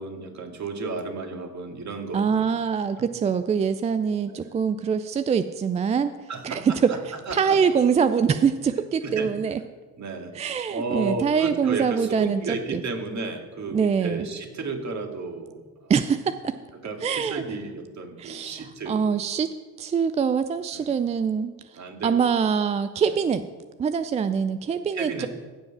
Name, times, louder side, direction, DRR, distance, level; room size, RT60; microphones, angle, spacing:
voice 1, 0.0-2.4 2.9-3.0 4.3-4.5 6.3-7.0 7.3-7.6 9.0-9.3 10.0-10.3 10.7-15.9 16.8-19.1 20.7-21.0 21.7-22.3 23.0-23.2 24.9-25.3, right 3 dB, 35° right, 4 dB, 2.1 m, -33 dB
voice 2, 2.1-6.6 7.3-9.6 10.3-12.8 13.7-14.3 15.9-16.5 17.0-17.4 18.2-19.5 19.8-23.5 23.8-25.3, right 6 dB, 15° right, 11 dB, 0.3 m, -24 dB
15.5 x 5.3 x 5.9 m, 1.3 s
hypercardioid pair, 70°, 46 cm